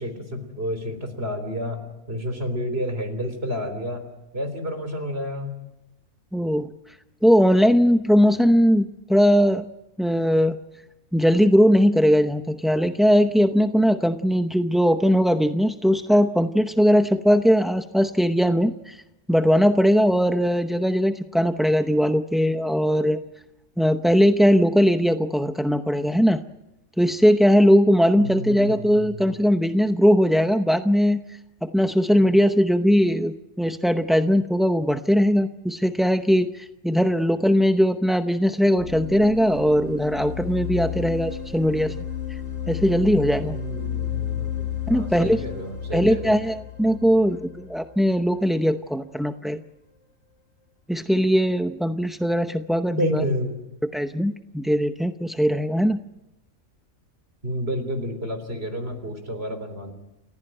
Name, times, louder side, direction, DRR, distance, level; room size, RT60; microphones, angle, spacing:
voice 1, 0.0-1.8 2.1-4.0 4.3-5.5 28.2-29.2 32.1-32.3 43.4-46.4 53.0-53.6 57.4-59.9, equal, 45° right, 7 dB, 3.8 m, -30 dB
voice 2, 6.3-6.7 7.2-9.6 10.0-10.6 11.1-19.0 19.3-23.2 23.8-26.4 27.0-31.2 31.6-41.9 42.3-42.4 42.7-43.6 44.9-45.4 45.9-49.6 50.9-53.2 53.9-56.0, equal, ahead, 7 dB, 0.3 m, -20 dB
sound 1, 38.8-48.6, left 9 dB, 55° left, 4.8 m, -32 dB
30.0 x 15.5 x 9.1 m, 0.92 s
omnidirectional pair, 1.5 m